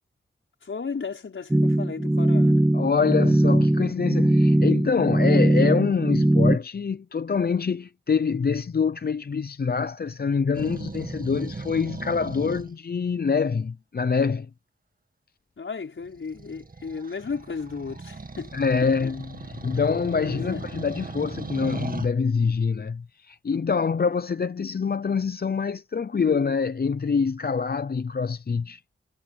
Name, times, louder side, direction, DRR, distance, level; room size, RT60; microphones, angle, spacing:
voice 1, 0.6-2.7 15.6-18.6 20.2-20.6, left 5 dB, 70° left, 5.6 m, -34 dB
sound 1, 1.5-6.6, right 1 dB, 5° right, 0.5 m, -20 dB
voice 2, 2.7-14.5 18.5-28.8, left 5 dB, 50° left, 0.7 m, -25 dB
sound 2, 10.5-12.7 16.0-22.1, right 3 dB, 45° right, 2.1 m, -37 dB
cardioid pair, 55°, 21 cm